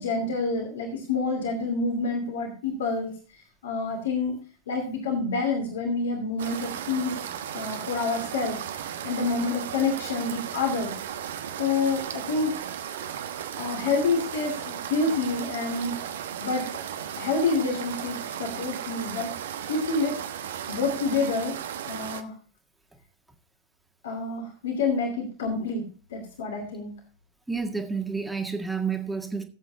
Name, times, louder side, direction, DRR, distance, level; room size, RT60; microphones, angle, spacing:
voice 1, 0.0-3.1 3.6-4.4 4.7-7.2 7.5-10.9 11.6-12.5 13.6-15.9 16.4-16.7 17.2-19.3 19.7-21.5 21.9-22.3 24.0-26.9, left 3 dB, 60° left, 2.6 m, -28 dB
sound 1, 6.4-22.2, right 9 dB, 60° right, 1.1 m, -35 dB
voice 2, 27.5-29.4, right 5 dB, 5° right, 1.8 m, -30 dB
17.0 x 8.1 x 2.8 m
figure-of-eight pair, 90°, 0 cm